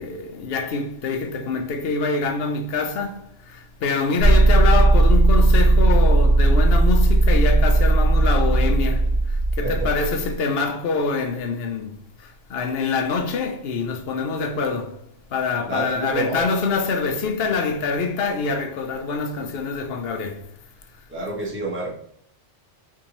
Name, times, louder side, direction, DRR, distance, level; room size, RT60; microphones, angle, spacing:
voice 1, 0.0-20.5, left 4 dB, 65° left, 0.7 m, -25 dB
sound 1, 4.2-10.3, right 2 dB, 70° right, 1.3 m, -16 dB
voice 2, 15.7-16.4 21.1-22.0, right 2 dB, 10° right, 1.0 m, -28 dB
4.6 x 2.7 x 2.9 m
omnidirectional pair, 1.2 m